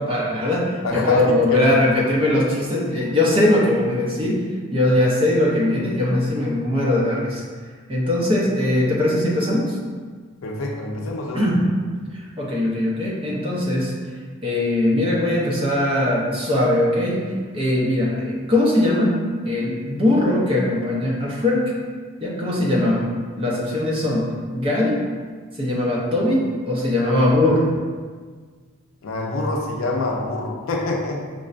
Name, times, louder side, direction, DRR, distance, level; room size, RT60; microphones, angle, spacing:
voice 1, 0.0-4.5 4.7-7.4 7.9-9.8 11.3-11.6 12.1-13.9 14.4-19.1 19.4-21.7 22.2-23.1 23.4-25.0 25.5-27.7, left 1 dB, 25° right, -4 dB, 0.6 m, -20 dB
voice 2, 0.8-1.7 10.4-11.5 29.0-31.2, left 2 dB, 65° left, 0 dB, 0.5 m, -26 dB
5.3 x 2.1 x 2.4 m, 1.6 s
head